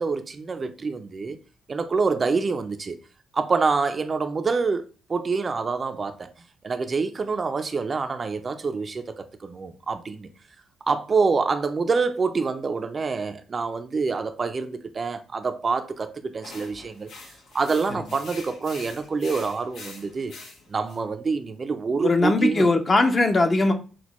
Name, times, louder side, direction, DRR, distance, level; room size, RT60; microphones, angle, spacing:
voice 1, 0.0-1.4 1.7-3.0 3.3-6.3 6.6-10.3 10.9-17.1 17.5-20.3 20.7-22.7, right 4 dB, 35° right, 0.4 m, -26 dB
sound 1, 16.4-21.0, left 3 dB, 75° left, 1.0 m, -44 dB
voice 2, 22.0-23.7, left 2 dB, 30° left, 0.6 m, -20 dB
6.0 x 2.2 x 2.9 m
cardioid pair, 90°, 0 cm